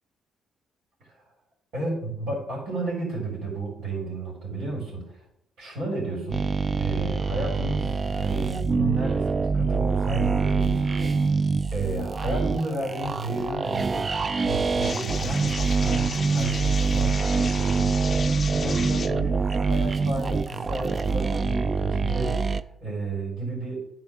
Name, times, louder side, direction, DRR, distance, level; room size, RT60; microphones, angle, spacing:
voice 1, 1.7-5.2 5.6-6.5 6.8-11.4 11.7-14.0 14.4-23.8, right 2 dB, 75° right, -2 dB, 3.5 m, -32 dB
sound 1, 6.3-22.6, right 4 dB, 35° right, 0.4 m, -25 dB
sound 2, 14.8-19.1, left 5 dB, 40° left, 0.4 m, -35 dB
9.6 x 3.8 x 7.1 m, 0.80 s
cardioid pair, 90°, 0 cm